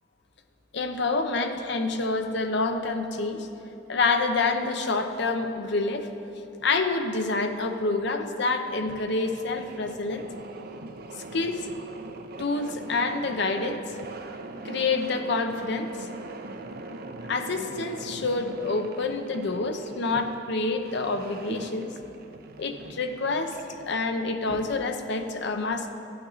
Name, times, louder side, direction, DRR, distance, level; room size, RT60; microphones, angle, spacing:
voice 1, 0.7-3.5 3.9-6.1 6.6-10.3 11.3-11.7 12.4-13.8 14.6-15.9 17.3-21.9 22.6-25.9, left 3 dB, 60° left, 7 dB, 0.7 m, -27 dB
sound 1, 8.7-25.1, right 2 dB, 50° right, 0.6 m, -41 dB
14.5 x 8.7 x 4.0 m, 3.0 s
head